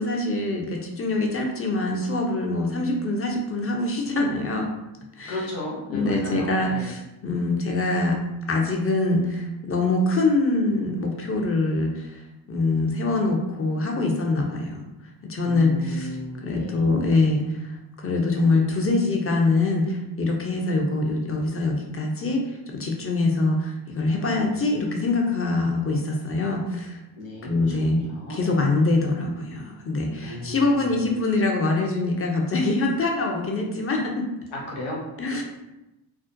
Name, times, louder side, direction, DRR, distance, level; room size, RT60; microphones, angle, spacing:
voice 1, 0.0-4.7 5.2-5.5 5.9-8.2 8.5-12.2 12.5-14.8 15.2-27.0 27.4-34.3 35.2-35.4, left 2 dB, 30° left, 1 dB, 0.6 m, -24 dB
voice 2, 5.3-6.9 15.4-16.8 27.1-28.6 30.2-31.1 34.5-35.0, left 2 dB, 85° left, -3 dB, 0.8 m, -35 dB
2.4 x 2.1 x 2.5 m, 0.95 s
supercardioid pair, 45°, 47 cm